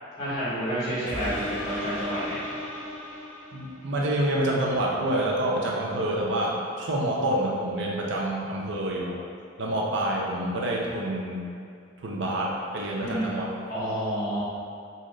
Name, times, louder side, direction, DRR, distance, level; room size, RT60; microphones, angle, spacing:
voice 1, 0.2-2.4 13.0-13.2 13.7-14.4, equal, 15° left, -17 dB, 1.4 m, -29 dB
sound 1, 1.1-4.0 4.5-4.6, left 1 dB, 40° left, 1.0 m, -35 dB
voice 2, 3.5-9.2 9.6-11.4 12.0-13.5, right 1 dB, 60° right, -3 dB, 0.5 m, -27 dB
4.0 x 2.5 x 3.1 m, 2.4 s
head